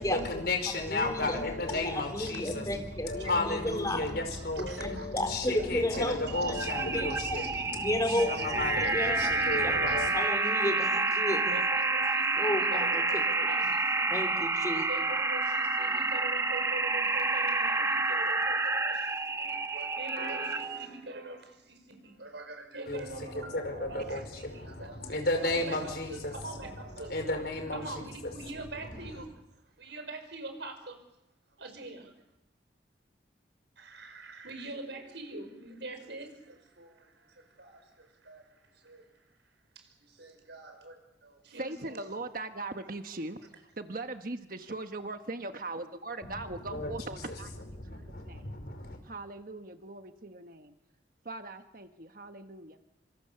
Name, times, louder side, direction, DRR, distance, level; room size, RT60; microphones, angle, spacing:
voice 1, 0.0-10.1 22.9-26.3 26.9-28.0 28.8-28.9 46.6-46.9 47.3-49.0, left 2 dB, 55° left, 6 dB, 5.1 m, -34 dB
voice 2, 0.6-1.4 1.8-4.0 4.6-6.2 6.5-6.6 6.9-7.1 7.8-9.3 9.6-9.7 10.1-11.6 12.4-13.2 14.1-14.9, left 1 dB, 20° left, 6 dB, 3.8 m, -33 dB
voice 3, 4.3-5.1 5.9-7.9 8.3-8.4 8.7-11.0 11.5-14.3 14.9-27.4 27.7-29.4 29.8-31.0 31.6-32.1 33.8-39.2 39.8-42.1, right 2 dB, 70° right, 6 dB, 5.6 m, -44 dB
sound 1, 6.3-20.9, right 3 dB, 15° right, 1.1 m, -29 dB
voice 4, 41.5-43.4 43.8-48.4 49.0-50.7 51.2-52.8, right 2 dB, 50° right, 7 dB, 1.3 m, -40 dB
27.5 x 26.0 x 7.0 m, 0.89 s
head